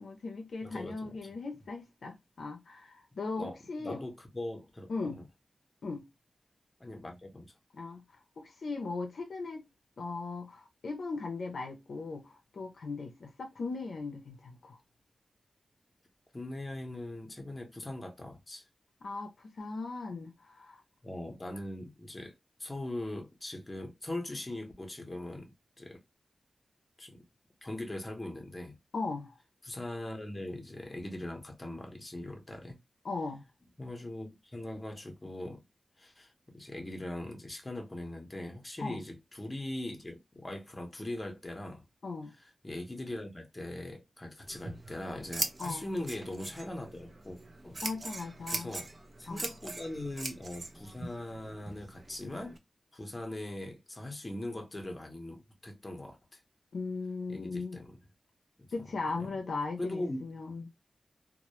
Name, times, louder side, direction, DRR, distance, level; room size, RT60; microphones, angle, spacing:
voice 1, 0.0-4.0 4.9-5.2 5.8-6.0 7.7-8.0 8.4-9.6 10.0-14.8 19.0-20.8 28.9-29.4 33.0-33.5 38.8-39.0 42.0-42.3 45.6-45.9 47.8-48.7 49.3-49.5 56.7-57.8 58.7-60.7, left 3 dB, 80° left, 0.5 m, -38 dB
voice 2, 0.6-1.3 3.4-5.2 6.8-7.5 16.3-18.6 21.0-22.3 22.6-26.0 27.0-27.2 27.6-28.8 29.6-32.8 33.8-35.6 36.0-41.8 42.6-47.8 48.5-48.9 49.2-52.6 52.9-56.4 57.3-58.0 58.6-59.4 59.8-60.2, left 1 dB, 25° left, 0.7 m, -41 dB
Scissors, 44.4-52.6, right 2 dB, 40° right, 0.4 m, -41 dB
2.1 x 2.0 x 2.9 m
wide cardioid pair, 85°, 0 cm